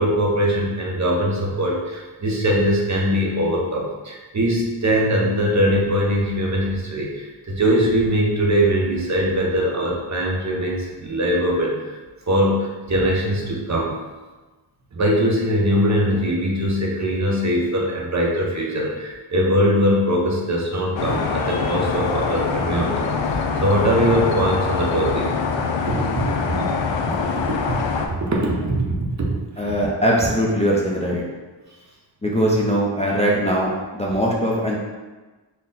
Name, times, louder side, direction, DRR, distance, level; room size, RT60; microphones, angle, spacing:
voice 1, 0.0-11.9 12.3-13.9 14.9-25.4 25.9-26.0 28.2-29.3, equal, 40° right, -2 dB, 0.7 m, -21 dB
sound 1, 21.0-28.1, left 5 dB, 80° left, 0.5 m, -24 dB
voice 2, 29.6-31.2 32.2-34.8, equal, 15° left, -5 dB, 0.4 m, -21 dB
4.2 x 2.1 x 3.8 m, 1.2 s
wide cardioid pair, 110°, 44 cm